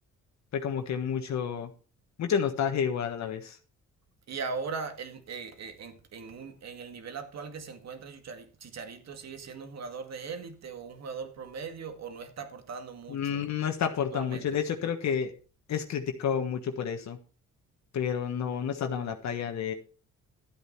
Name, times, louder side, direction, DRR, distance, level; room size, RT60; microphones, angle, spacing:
voice 1, 0.5-1.7 2.2-3.6 13.1-15.3 15.7-17.2 17.9-19.7, left 7 dB, 65° left, 1.4 m, -30 dB
voice 2, 4.3-13.5 14.1-14.5, right 5 dB, 60° right, 2.0 m, -39 dB
12.0 x 8.5 x 4.5 m
cardioid pair, 90°, 30 cm